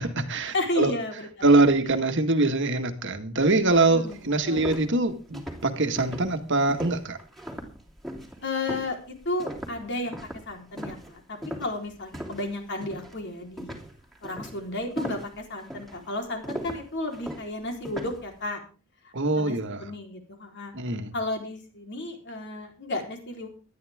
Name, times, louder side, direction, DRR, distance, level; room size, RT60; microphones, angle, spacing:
voice 1, 0.0-0.9 1.4-7.2 19.1-19.8 20.7-21.1, right 2 dB, 55° right, 7 dB, 1.8 m, -23 dB
voice 2, 0.5-1.5 3.9-4.7 8.4-13.8 14.2-18.6 19.0-20.7 21.1-23.5, left 2 dB, 50° left, 3 dB, 4.0 m, -33 dB
sound 1, 3.6-3.7 4.1-12.5 12.8-13.2 13.6-18.3, equal, ahead, 3.0 m, -38 dB
18.5 x 12.5 x 3.6 m, 0.35 s
head